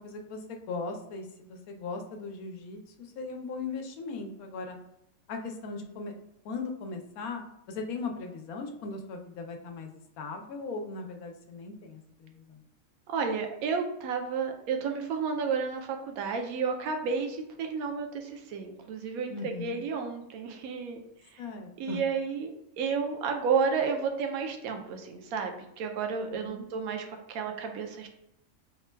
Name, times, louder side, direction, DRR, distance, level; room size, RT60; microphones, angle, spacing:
voice 1, 0.0-4.8 5.3-6.1 6.4-12.6 19.3-19.8 21.4-22.0 26.2-26.7, left 4 dB, 90° left, 4 dB, 1.1 m, -38 dB
voice 2, 13.1-21.0 21.3-21.4 21.8-22.5 22.8-28.1, right 5 dB, 85° right, 4 dB, 1.1 m, -31 dB
3.5 x 2.2 x 4.3 m, 0.82 s
omnidirectional pair, 1.5 m